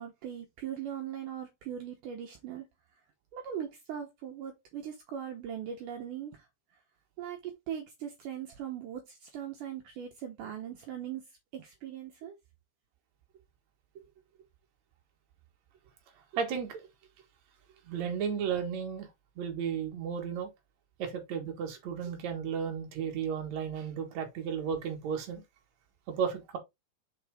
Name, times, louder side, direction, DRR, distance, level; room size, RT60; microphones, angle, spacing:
voice 1, 0.0-2.7 3.3-6.5 7.2-11.2 11.5-12.4, right 9 dB, 85° right, 1.8 m, -40 dB
voice 2, 16.3-16.8 17.8-19.1 19.4-20.5 21.0-25.4 26.1-26.6, right 7 dB, 60° right, 2.0 m, -34 dB
5.9 x 4.5 x 3.5 m
omnidirectional pair, 5.0 m